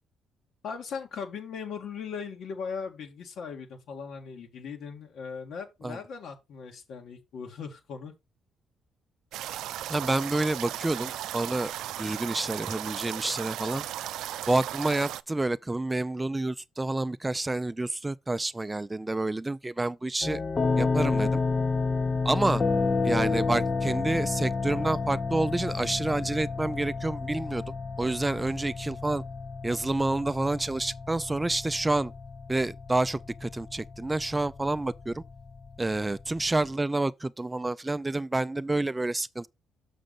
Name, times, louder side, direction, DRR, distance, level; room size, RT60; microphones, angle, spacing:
voice 1, 0.6-8.1, left 6 dB, 70° left, 1.9 m, -38 dB
sound 1, 9.3-15.2, right 12 dB, 85° right, 0.4 m, -36 dB
voice 2, 9.9-11.7 12.0-13.8 14.5-20.4 20.8-21.4 22.2-22.6 23.0-27.6 28.0-29.2 29.6-32.1 32.5-35.2 35.8-39.5, right 2 dB, 15° right, 0.4 m, -28 dB
sound 2, 20.2-36.7, left 4 dB, 30° left, 0.6 m, -31 dB
6.4 x 6.3 x 4.0 m
cardioid pair, 90°, 0 cm